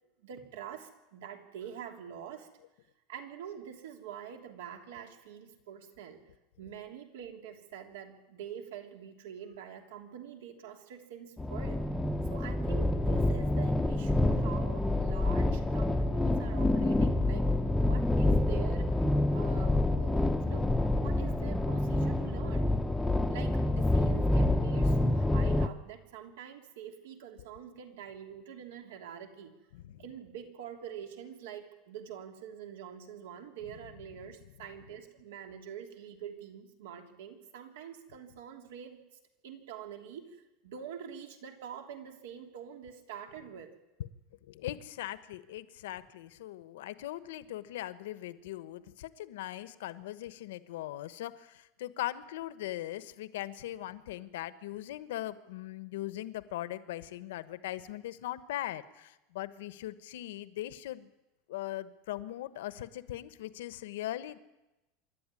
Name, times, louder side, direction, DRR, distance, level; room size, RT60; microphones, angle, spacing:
voice 1, 0.2-2.5 3.1-6.2 6.6-11.8 12.2-18.9 19.3-22.7 23.3-29.5 30.0-39.0 39.4-43.7, right 8 dB, 85° right, 4 dB, 3.1 m, -45 dB
sound 1, 11.4-25.7, left 1 dB, 5° left, 0.7 m, -27 dB
voice 2, 29.7-30.0 44.4-61.1 61.5-64.4, left 14 dB, 80° left, 14 dB, 1.1 m, -40 dB
26.5 x 11.5 x 9.8 m, 1.0 s
supercardioid pair, 175°, 0 cm